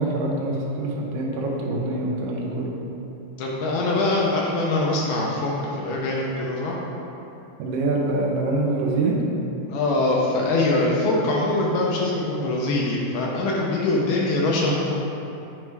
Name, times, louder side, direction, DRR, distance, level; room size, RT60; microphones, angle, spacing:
voice 1, 0.0-2.7 7.6-9.2, right 2 dB, 75° right, -2 dB, 2.3 m, -25 dB
voice 2, 3.4-6.8 9.7-14.9, left 2 dB, 75° left, -3 dB, 2.0 m, -23 dB
8.6 x 3.2 x 4.6 m, 2.9 s
omnidirectional pair, 4.1 m